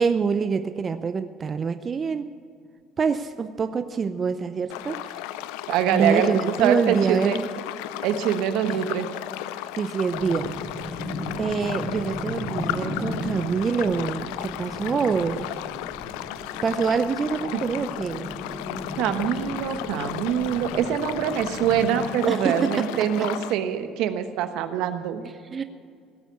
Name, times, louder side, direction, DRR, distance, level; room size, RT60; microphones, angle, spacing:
voice 1, 0.0-2.3 3.0-5.2 5.9-7.5 8.6-8.8 9.8-10.6 10.8-11.0 11.4-15.5 16.6-18.3 22.3-22.9 23.2-23.3 25.5-25.6, right 5 dB, 35° right, 10 dB, 0.6 m, -25 dB
sound 1, 4.7-23.5, left 14 dB, 85° left, 0.5 m, -35 dB
voice 2, 5.7-7.4 8.0-9.1 17.5-17.6 19.0-25.2, right 9 dB, 75° right, 8 dB, 1.1 m, -24 dB
sound 2, 10.1-22.1, left 1 dB, 30° left, 4.7 m, -36 dB
17.0 x 8.3 x 8.2 m, 2.2 s
supercardioid pair, 80°, 0 cm